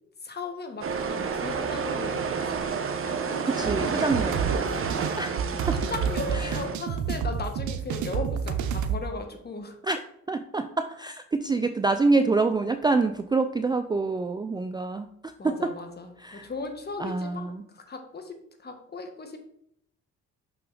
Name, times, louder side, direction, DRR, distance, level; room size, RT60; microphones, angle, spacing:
voice 1, 0.2-2.5 3.0-3.5 3.8-4.4 4.7-4.9 5.9-9.7 15.4-19.4, left 3 dB, 35° left, 5 dB, 1.3 m, -37 dB
sound 1, 0.8-6.8, right 6 dB, 45° right, 0.9 m, -30 dB
voice 2, 3.5-4.5 5.2-5.3 5.7-5.8 6.3-6.6 9.8-10.0 10.3-15.7 16.2-16.5 17.0-17.6, right 3 dB, 15° right, 8 dB, 0.4 m, -26 dB
sound 2, 4.1-9.0, right 7 dB, 70° right, 0.7 m, -29 dB
5.9 x 5.8 x 3.9 m, 0.71 s
cardioid pair, 90°, 30 cm